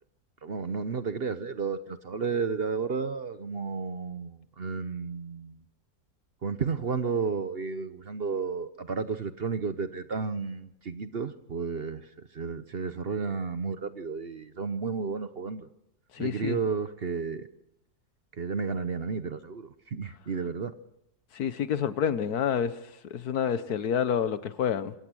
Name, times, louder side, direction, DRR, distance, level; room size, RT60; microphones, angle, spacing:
voice 1, 0.4-5.6 6.4-12.0 12.3-15.7 16.2-17.5 18.4-20.7, right 5 dB, 45° right, 0.9 m, -32 dB
voice 2, 16.1-16.6 21.3-22.7 23.1-24.9, left 8 dB, 75° left, 1.5 m, -28 dB
26.0 x 17.0 x 6.3 m
omnidirectional pair, 1.7 m